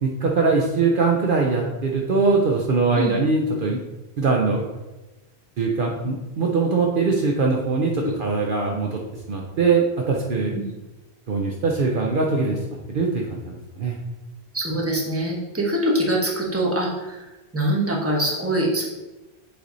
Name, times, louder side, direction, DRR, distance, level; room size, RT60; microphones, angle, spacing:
voice 1, 0.0-3.8 4.2-4.7 5.6-9.0 9.3-10.6 11.3-12.6 12.9-14.0, right 4 dB, 60° right, -1 dB, 0.8 m, -22 dB
voice 2, 14.5-18.8, right 1 dB, 15° right, -2 dB, 1.1 m, -24 dB
7.6 x 3.3 x 4.0 m, 1.1 s
omnidirectional pair, 1.1 m